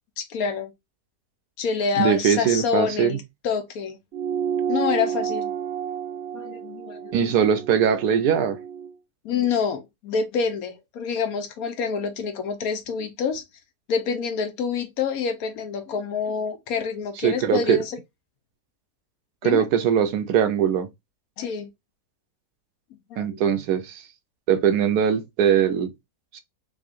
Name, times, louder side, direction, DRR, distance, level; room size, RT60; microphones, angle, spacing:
voice 1, 0.2-0.7 1.6-4.0 4.7-5.5 6.3-7.4 9.2-13.4 13.9-18.0 19.4-19.6 21.4-21.7 23.1-23.4, left 6 dB, 70° left, 1.1 m, -27 dB
voice 2, 1.9-3.2 7.1-8.6 17.2-17.8 19.4-20.9 23.2-24.1 24.5-25.9, right 8 dB, 80° right, 1.2 m, -21 dB
sound 1, 4.1-8.9, right 8 dB, 60° right, 0.7 m, -30 dB
3.6 x 3.4 x 2.5 m
omnidirectional pair, 1.7 m